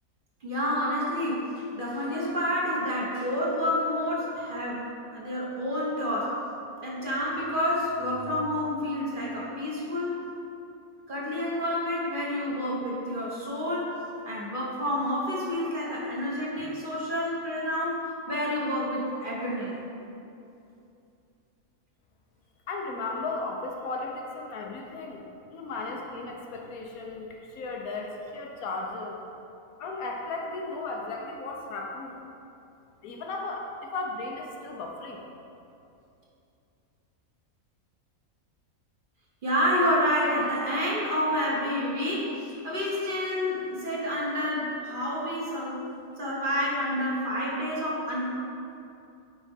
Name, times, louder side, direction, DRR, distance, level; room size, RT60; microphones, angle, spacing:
voice 1, 0.4-4.9 5.1-6.3 6.8-10.2 11.1-13.9 14.2-18.0 18.3-19.8 39.4-45.8 46.2-48.3, equal, 40° right, -5 dB, 1.2 m, -29 dB
voice 2, 22.7-25.2 25.5-29.2 29.8-32.2 33.0-35.2, left 3 dB, 85° left, 0 dB, 1.2 m, -35 dB
8.3 x 4.1 x 3.5 m, 2.7 s
omnidirectional pair, 1.5 m